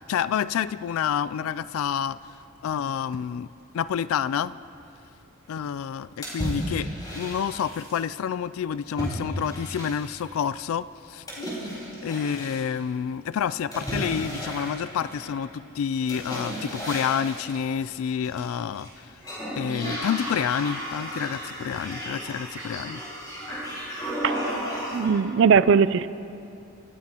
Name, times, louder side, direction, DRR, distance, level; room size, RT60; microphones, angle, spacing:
voice 1, 0.1-2.2 2.6-3.5 3.7-4.5 5.5-6.9 7.2-11.5 12.0-19.2 19.5-23.0, left 8 dB, 80° left, 16 dB, 0.3 m, -28 dB
sound 1, 6.2-8.0 9.0-10.3 11.3-12.6 13.7-15.4 16.1-17.6 18.2-18.9 19.2-25.2, equal, 20° left, 4.6 m, -33 dB
voice 2, 24.9-26.1, right 6 dB, 60° right, 15 dB, 0.4 m, -19 dB
28.5 x 15.5 x 2.9 m, 2.7 s
head